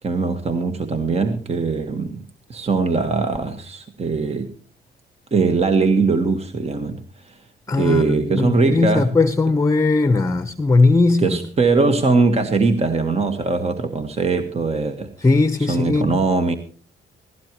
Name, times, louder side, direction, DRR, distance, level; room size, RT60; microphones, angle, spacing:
voice 1, 0.0-4.5 5.3-7.4 7.8-9.1 11.2-15.1 15.7-16.5, right 4 dB, 30° right, 1.6 m, -21 dB
voice 2, 7.7-11.4 15.2-16.2, left 3 dB, 15° left, 1.0 m, -18 dB
17.5 x 17.0 x 3.1 m
cardioid pair, 90°, 20 cm